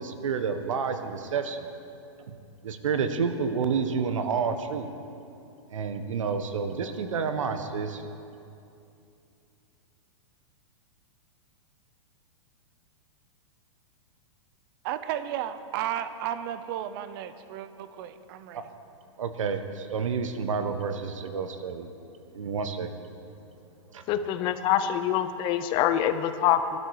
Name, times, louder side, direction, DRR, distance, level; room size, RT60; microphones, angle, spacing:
voice 1, 0.0-1.6 2.3-2.4 2.6-4.9 5.7-8.0 18.5-18.6 19.2-21.9 22.3-22.9 23.9-24.0, right 5 dB, 85° right, 8 dB, 1.3 m, -29 dB
voice 2, 14.8-18.7, right 10 dB, 45° right, 11 dB, 0.9 m, -33 dB
voice 3, 24.1-26.8, left 10 dB, 30° left, 11 dB, 0.7 m, -25 dB
19.0 x 12.5 x 4.9 m, 2.6 s
hypercardioid pair, 145°, 16 cm